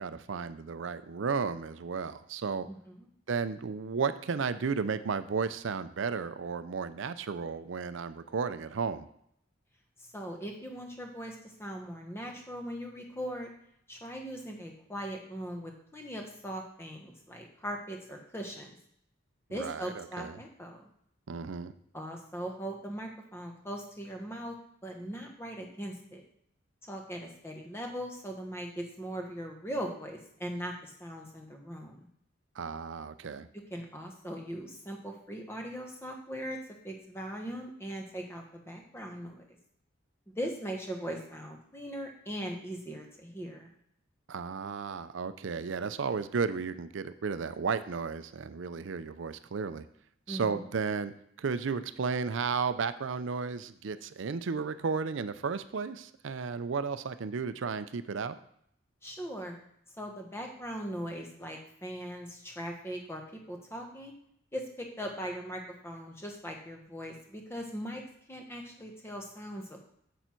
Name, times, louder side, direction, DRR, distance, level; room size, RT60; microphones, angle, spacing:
voice 1, 0.0-2.7 3.3-9.1 19.5-20.4 21.3-21.7 32.6-33.5 44.3-49.9 50.3-51.1 51.4-58.4, right 5 dB, 65° right, 13 dB, 0.5 m, -33 dB
voice 2, 2.7-3.0 10.0-13.5 13.9-18.7 19.5-20.8 21.9-24.5 24.8-26.2 26.9-32.1 33.7-36.6 36.8-39.4 40.3-43.7 50.3-50.7 59.0-59.6 60.0-64.1 64.5-68.0 68.3-69.9, equal, 10° left, 2 dB, 1.1 m, -40 dB
7.2 x 6.7 x 4.5 m, 0.71 s
head